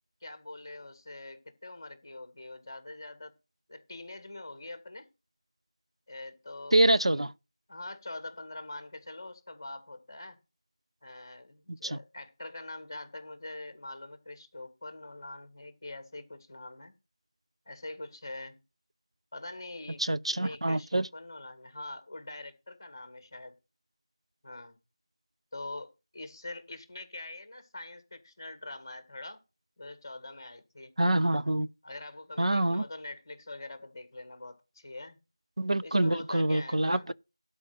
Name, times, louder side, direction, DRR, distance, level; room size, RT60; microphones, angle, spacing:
voice 1, 0.2-3.3 3.7-5.1 6.1-7.2 7.7-10.4 11.0-16.9 17.7-18.6 19.3-20.0 20.3-23.6 24.4-24.8 25.5-29.4 29.8-30.9 31.8-35.2 35.8-37.0, left 2 dB, 20° left, 1.9 m, -44 dB
voice 2, 6.7-7.3 11.7-12.0 20.0-21.1 31.0-31.7 32.4-32.8 35.6-37.1, right 1 dB, 70° right, 0.7 m, -26 dB
12.0 x 4.9 x 5.9 m
figure-of-eight pair, 175°, 3 cm